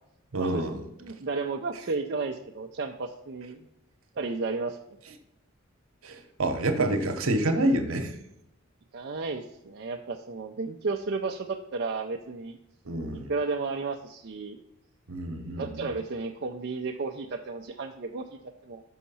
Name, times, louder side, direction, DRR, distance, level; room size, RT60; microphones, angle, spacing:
voice 1, 0.3-0.8 6.0-8.1 12.8-13.3 15.1-15.9, right 1 dB, 70° right, 6 dB, 1.0 m, -28 dB
voice 2, 1.0-3.7 4.2-4.8 8.9-12.6 13.3-14.6 15.6-18.8, right 4 dB, 50° right, 1 dB, 0.5 m, -33 dB
6.3 x 5.7 x 5.5 m, 0.82 s
head